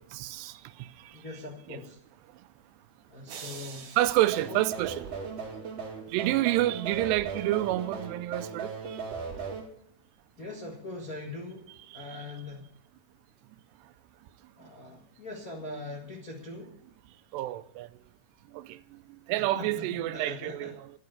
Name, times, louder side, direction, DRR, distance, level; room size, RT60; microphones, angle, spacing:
voice 1, 0.0-1.2 1.7-1.8 4.0-5.1 6.1-9.0 11.9-12.3 17.3-17.9 18.5-19.0 19.3-20.9, right 15 dB, 90° right, 2.8 m, -29 dB
voice 2, 1.1-2.0 3.1-3.9 4.5-4.6 10.4-12.7 14.6-16.8 19.5-20.7, left 2 dB, 75° left, 0.8 m, -41 dB
sound 1, 3.3-5.6, right 7 dB, 65° right, 3.9 m, -47 dB
sound 2, 4.3-9.6, right 5 dB, 45° right, 3.2 m, -38 dB
12.5 x 9.4 x 8.1 m
omnidirectional pair, 4.7 m